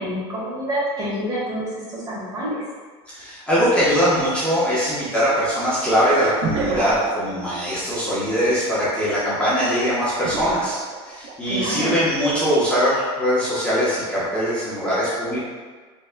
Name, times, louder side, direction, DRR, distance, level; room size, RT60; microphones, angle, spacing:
voice 1, 0.0-1.6 1.9-2.6 11.5-11.9, equal, 30° right, -7 dB, 1.5 m, -27 dB
voice 2, 3.1-15.4, equal, 10° left, -11 dB, 1.0 m, -21 dB
sound 1, 6.4-7.3 10.2-11.4 11.9-12.2, right 3 dB, 55° right, 0.6 m, -28 dB
4.0 x 3.4 x 2.2 m, 1.5 s
supercardioid pair, 125°, 14 cm